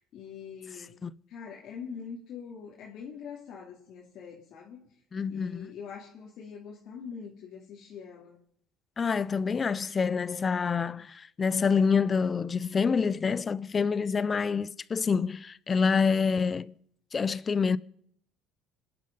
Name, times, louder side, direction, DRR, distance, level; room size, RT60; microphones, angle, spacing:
voice 1, 0.1-1.0 1.3-4.8 5.3-8.4, left 6 dB, 60° left, 2.7 m, -43 dB
voice 2, 5.1-5.7 9.0-16.7 17.1-17.8, left 5 dB, 30° left, 0.6 m, -27 dB
25.5 x 10.5 x 5.4 m
supercardioid pair, 95°, 0 cm